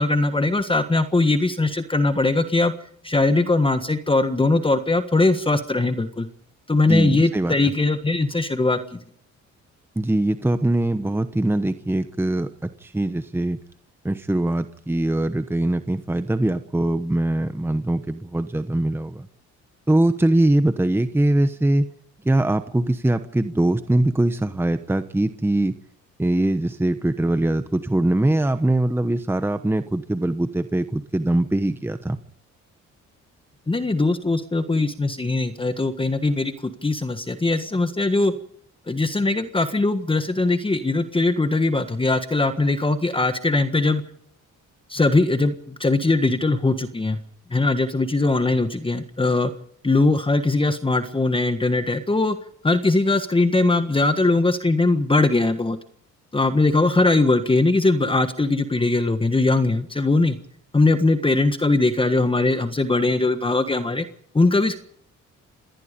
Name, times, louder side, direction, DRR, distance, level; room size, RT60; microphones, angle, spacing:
voice 1, 0.0-2.7 3.0-6.3 6.7-9.0 33.7-36.5 36.8-38.3 38.9-44.0 44.9-47.2 47.5-49.5 49.8-52.4 52.6-55.8 56.3-60.4 60.7-64.0 64.3-64.8, left 2 dB, 15° left, 9 dB, 1.5 m, -20 dB
voice 2, 6.9-7.6 10.0-13.6 14.0-19.3 19.9-21.9 22.2-25.7 26.2-32.2, right 1 dB, 10° right, 10 dB, 1.1 m, -22 dB
26.5 x 18.5 x 5.3 m, 0.66 s
cardioid pair, 90°, 30 cm